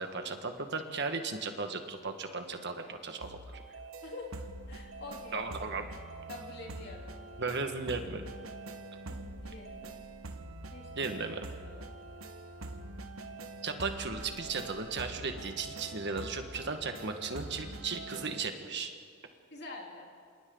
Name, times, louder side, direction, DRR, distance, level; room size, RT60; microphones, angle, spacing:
voice 1, 0.0-3.6 5.3-5.9 7.4-8.2 11.0-11.4 13.6-18.9, right 4 dB, 55° right, 6 dB, 1.7 m, -36 dB
sound 1, 3.2-18.4, right 2 dB, 75° right, 1.4 m, -45 dB
voice 2, 4.0-5.5 6.3-7.2 9.1-10.0 10.7-11.2 11.6-11.9 19.5-20.1, left 3 dB, 50° left, -1 dB, 3.6 m, -46 dB
28.0 x 27.5 x 4.0 m, 2.1 s
head